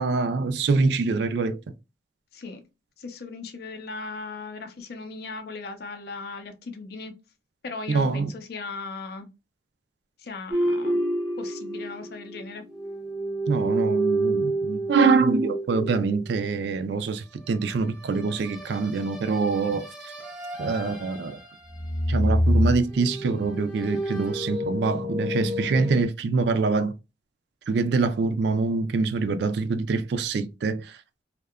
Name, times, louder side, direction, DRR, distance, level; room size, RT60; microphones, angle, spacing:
voice 1, 0.0-1.6 7.9-8.3 13.5-19.9 20.6-21.4 22.1-26.9 27.7-31.0, right 4 dB, 65° right, 0.3 m, -25 dB
voice 2, 3.0-7.1 7.6-9.3 10.2-11.0 11.4-12.6, left 3 dB, 55° left, 0.4 m, -37 dB
sound 1, 10.5-12.4 12.7-16.6 18.2-21.4 21.7-26.0, right 1 dB, 5° right, 0.5 m, -28 dB
2.7 x 2.2 x 2.3 m
head